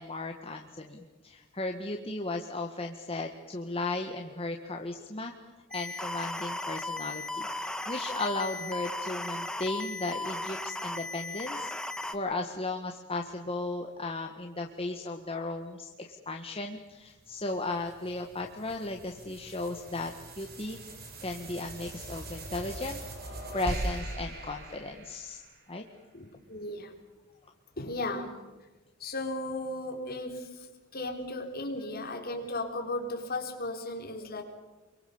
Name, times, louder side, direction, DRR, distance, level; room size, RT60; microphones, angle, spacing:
voice 1, 0.0-5.3 5.7-11.7 12.1-20.1 20.4-20.8 21.2-23.0 23.5-25.4 25.7-25.8, left 2 dB, 30° left, 3 dB, 1.6 m, -35 dB
sound 1, 5.7-12.1, left 2 dB, 5° left, 1.3 m, -36 dB
sound 2, 17.2-25.8, right 1 dB, 50° right, 4.9 m, -41 dB
voice 2, 26.1-26.9 27.8-28.5 29.0-30.7 30.9-34.4, left 2 dB, 50° left, 3 dB, 4.0 m, -35 dB
28.5 x 23.5 x 7.1 m, 1.2 s
head